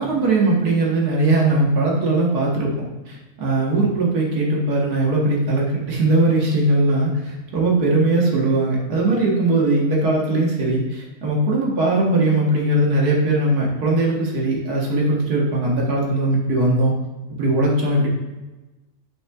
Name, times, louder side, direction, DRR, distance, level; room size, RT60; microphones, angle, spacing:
voice 1, 0.0-2.7 3.1-16.9 17.3-18.1, right 2 dB, 80° right, -3 dB, 1.7 m, -19 dB
9.7 x 5.4 x 2.3 m, 1.1 s
omnidirectional pair, 1.6 m